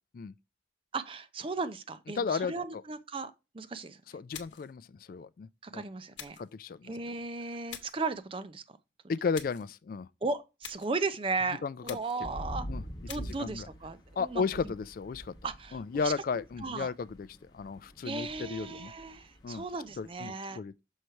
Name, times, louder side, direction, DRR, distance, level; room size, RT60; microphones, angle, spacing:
voice 1, 0.9-4.0 5.6-6.4 6.8-8.6 10.2-12.7 13.1-14.4 15.4-16.1 16.6-16.9 18.0-20.6, right 3 dB, 30° right, 0.5 m, -36 dB
voice 2, 2.2-2.5 4.1-5.8 6.4-6.9 9.1-10.1 11.6-12.0 12.7-12.8 13.1-13.7 14.2-15.3 15.7-17.3 17.5-18.9 19.4-19.6 20.0-20.7, left 5 dB, 50° left, 0.3 m, -34 dB
sound 1, 4.3-4.8 6.2-6.5 7.7-8.1 9.3-9.7 10.6-11.0 11.9-12.3 13.1-13.4, left 9 dB, 90° left, 0.9 m, -46 dB
sound 2, 12.2-20.1, equal, 25° left, 1.2 m, -45 dB
6.4 x 3.1 x 5.5 m
head